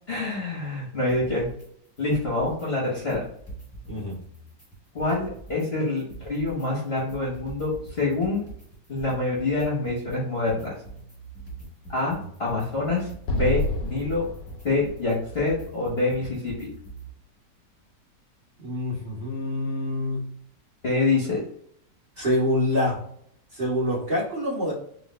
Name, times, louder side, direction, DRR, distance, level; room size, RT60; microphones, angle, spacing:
voice 1, 0.1-1.5 2.0-3.2 4.9-8.4 8.9-10.7 11.9-14.3 14.6-16.7 20.8-21.4, left 2 dB, 40° left, -5 dB, 1.2 m, -26 dB
sound 1, 1.1-1.7 2.0-2.7 3.0-5.7 6.0-17.1, right 3 dB, 10° left, 0.9 m, -43 dB
Explosion, 13.3-16.6, left 1 dB, 80° left, 1.3 m, -31 dB
voice 2, 18.6-20.3 22.2-23.0 23.5-24.7, left 1 dB, 30° right, -8 dB, 1.9 m, -26 dB
4.0 x 2.9 x 3.1 m, 0.67 s
omnidirectional pair, 1.9 m